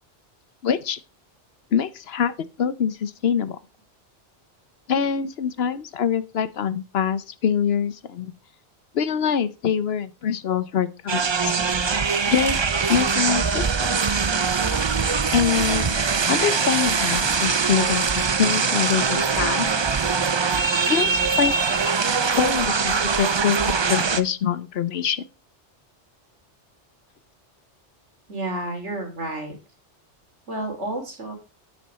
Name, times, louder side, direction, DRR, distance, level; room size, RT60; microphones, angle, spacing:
voice 1, 0.6-1.0 1.7-2.3 2.6-3.6 4.9-8.3 8.9-11.5 12.3-12.6 12.9-14.2 15.3-19.8 20.8-21.5 22.3-25.2, left 8 dB, 65° left, 0.9 m, -25 dB
sound 1, 11.1-24.2, right 5 dB, 35° right, 0.4 m, -22 dB
voice 2, 28.3-29.5 30.5-31.3, right 1 dB, 80° right, 3.3 m, -30 dB
9.3 x 6.3 x 4.2 m
omnidirectional pair, 1.2 m